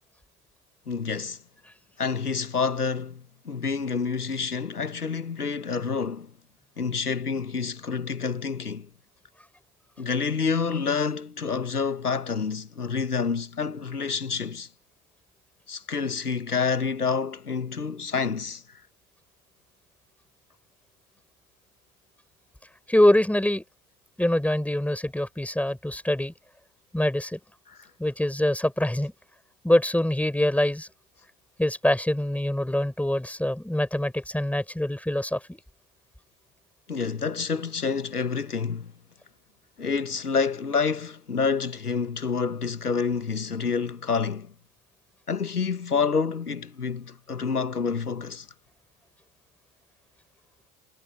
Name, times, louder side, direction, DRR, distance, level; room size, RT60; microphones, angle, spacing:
voice 1, 0.9-1.4 2.0-6.3 6.8-8.9 10.0-14.7 15.7-18.6 27.7-27.8 36.9-38.9 39.8-44.5 45.3-48.5, left 5 dB, 90° left, 1.5 m, -28 dB
voice 2, 22.9-23.6 24.2-26.3 26.9-27.4 28.0-29.1 29.6-30.9 31.6-35.6, left 1 dB, 5° left, 5.7 m, -24 dB
figure-of-eight pair, 80°, 44 cm